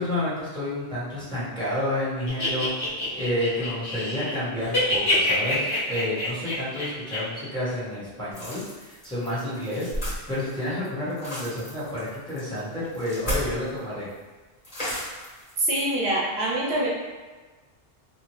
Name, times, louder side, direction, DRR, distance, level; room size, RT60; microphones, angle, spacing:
voice 1, 0.0-9.9 10.3-14.1, left 1 dB, 5° left, -10 dB, 0.9 m, -30 dB
sound 1, 2.3-4.4 4.6-7.2, left 2 dB, 70° left, 1.1 m, -26 dB
sound 2, 8.3-13.8 14.1-14.2 14.6-15.5, equal, 40° left, 1.3 m, -34 dB
voice 2, 15.6-16.9, right 1 dB, 80° right, -5 dB, 1.0 m, -24 dB
2.7 x 2.4 x 3.0 m, 1.3 s
omnidirectional pair, 1.1 m